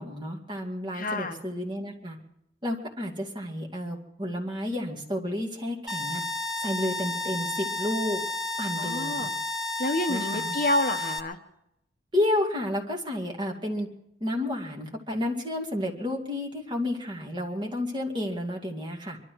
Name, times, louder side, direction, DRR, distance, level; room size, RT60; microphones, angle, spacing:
voice 1, 0.0-2.2 2.6-6.2 6.6-8.2 8.6-9.3 10.1-10.6 12.1-13.9 14.2-19.2, left 1 dB, 25° right, 0 dB, 2.4 m, -31 dB
voice 2, 0.9-1.4 8.8-9.3 9.8-11.4, left 1 dB, 45° left, 6 dB, 1.1 m, -28 dB
sound 1, 5.9-11.2, left 2 dB, 5° right, 1.1 m, -32 dB
23.5 x 13.0 x 4.7 m, 0.79 s
head